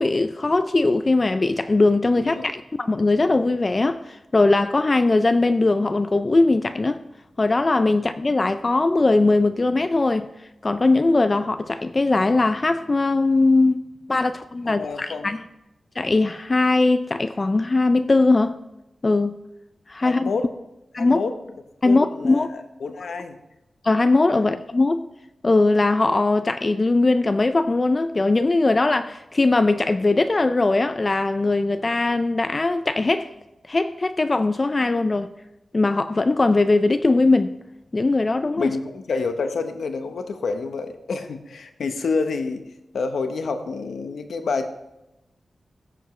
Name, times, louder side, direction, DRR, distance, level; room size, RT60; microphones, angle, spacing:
voice 1, 0.0-7.0 7.4-10.3 10.6-13.8 14.1-15.4 16.0-18.6 19.0-19.4 19.9-20.3 20.9-21.2 21.8-22.5 23.8-25.1 25.4-33.3 33.7-35.3 35.7-37.5 37.9-38.7, left 2 dB, 25° left, 0.3 m, -20 dB
voice 2, 2.1-2.5 14.6-15.3 20.0-20.5 21.0-21.4 21.8-23.4 38.6-42.6 42.9-44.7, left 4 dB, 85° left, 0.9 m, -28 dB
16.5 x 7.0 x 3.2 m
wide cardioid pair, 170°, 0 cm